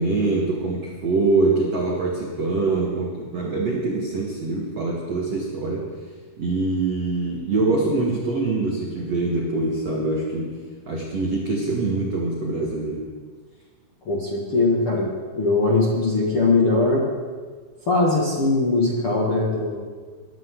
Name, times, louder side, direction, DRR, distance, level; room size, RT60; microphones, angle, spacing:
voice 1, 0.0-5.9 6.4-10.5 10.9-13.1, right 3 dB, 85° right, -2 dB, 1.4 m, -24 dB
voice 2, 14.0-15.1 15.3-17.0 17.9-19.8, left 3 dB, 70° left, -5 dB, 1.3 m, -20 dB
22.5 x 12.0 x 3.8 m, 1.5 s
omnidirectional pair, 5.9 m